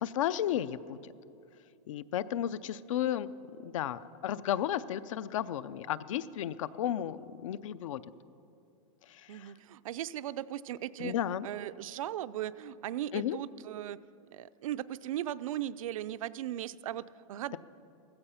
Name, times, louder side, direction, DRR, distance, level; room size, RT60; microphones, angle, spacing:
voice 1, 0.0-1.1 1.9-3.3 3.6-8.0 9.1-9.5 11.0-11.5 13.1-13.4, left 11 dB, 70° left, 17 dB, 0.5 m, -33 dB
voice 2, 9.3-11.1 11.4-14.0 14.3-17.0 17.3-17.6, right 12 dB, 80° right, 14 dB, 0.5 m, -37 dB
15.5 x 15.0 x 5.7 m, 2.6 s
supercardioid pair, 175°, 17 cm